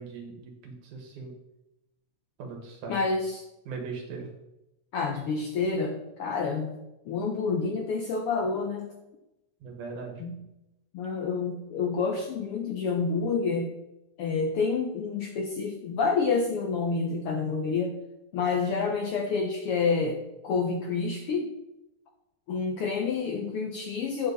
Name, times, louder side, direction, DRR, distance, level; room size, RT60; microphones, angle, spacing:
voice 1, 0.0-1.3 2.4-3.0 3.7-4.3 9.6-10.2, right 4 dB, 85° right, 2 dB, 3.2 m, -39 dB
voice 2, 2.9-3.4 4.9-6.7 7.1-8.9 10.2-10.4 10.9-13.7 14.2-17.9 18.3-21.5 22.5-24.3, left 4 dB, 75° left, 3 dB, 1.3 m, -28 dB
8.8 x 7.9 x 4.0 m, 0.91 s
omnidirectional pair, 3.4 m